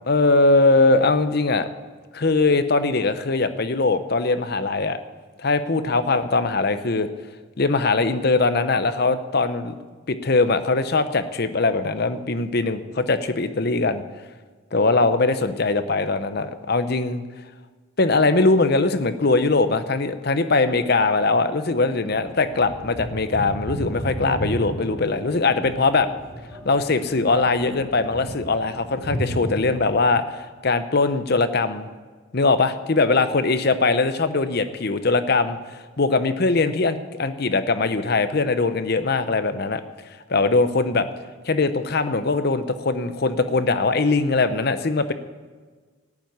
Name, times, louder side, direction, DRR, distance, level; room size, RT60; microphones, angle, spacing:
voice 1, 0.1-1.7 2.1-5.0 5.4-7.1 7.6-9.8 10.1-14.0 14.7-17.2 18.0-26.1 26.6-31.9 32.3-35.6 36.0-39.8 40.3-41.1 41.4-45.1, left 3 dB, 50° left, 11 dB, 0.8 m, -21 dB
sound 1, 22.1-30.1, equal, 5° left, 3.5 m, -34 dB
14.0 x 7.4 x 9.4 m, 1.4 s
head